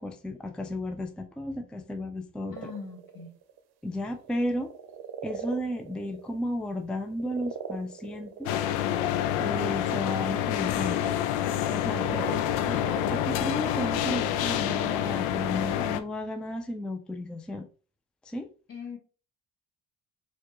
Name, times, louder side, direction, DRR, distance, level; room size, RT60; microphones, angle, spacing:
voice 1, 0.0-2.6 3.8-4.7 5.2-8.6 9.4-11.2 11.7-12.8 13.1-17.6 18.2-18.5, left 1 dB, ahead, 0.5 m, -34 dB
voice 2, 2.5-3.3 18.7-19.0, left 5 dB, 45° left, 1.8 m, -41 dB
sound 1, 2.5-3.6 3.9-10.4 11.7-13.8, right 8 dB, 55° right, 0.7 m, -41 dB
sound 2, 8.5-16.0, left 11 dB, 75° left, 0.5 m, -27 dB
4.2 x 2.5 x 3.0 m
hypercardioid pair, 50°, 44 cm